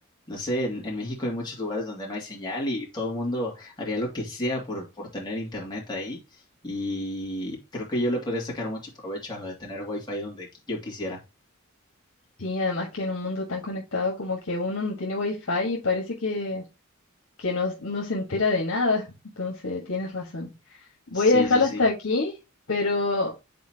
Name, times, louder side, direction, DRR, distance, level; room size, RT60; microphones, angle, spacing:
voice 1, 0.3-6.2 6.6-11.2 21.1-21.8, left 1 dB, 20° left, 2.4 m, -31 dB
voice 2, 12.4-16.6 17.4-19.0 19.4-20.5 21.1-22.3 22.7-23.3, left 3 dB, 80° left, 1.5 m, -26 dB
8.4 x 4.2 x 2.9 m
head